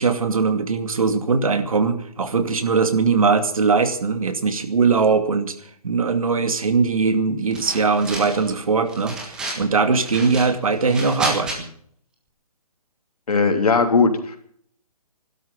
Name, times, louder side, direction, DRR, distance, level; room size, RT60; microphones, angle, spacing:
voice 1, 0.0-5.6 5.8-11.7, right 4 dB, 65° right, 9 dB, 2.4 m, -20 dB
sound 1, 7.5-8.5 8.9-9.7 10.0-11.6, right 2 dB, 5° right, 1.5 m, -31 dB
voice 2, 13.3-14.4, left 4 dB, 80° left, 6 dB, 3.1 m, -18 dB
16.0 x 12.5 x 7.1 m, 0.62 s
hypercardioid pair, 175°, 19 cm